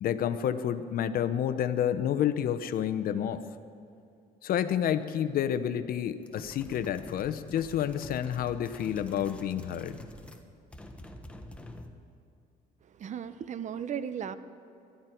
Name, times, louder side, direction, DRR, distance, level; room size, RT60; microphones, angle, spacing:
voice 1, 0.0-3.4 4.4-10.0, left 9 dB, 60° left, 12 dB, 0.9 m, -29 dB
sound 1, 6.2-10.5 10.7-12.0, left 1 dB, 5° left, 1.2 m, -47 dB
voice 2, 12.9-14.3, right 8 dB, 45° right, 13 dB, 0.8 m, -36 dB
22.0 x 13.0 x 4.6 m, 2.6 s
cardioid pair, 110°, 17 cm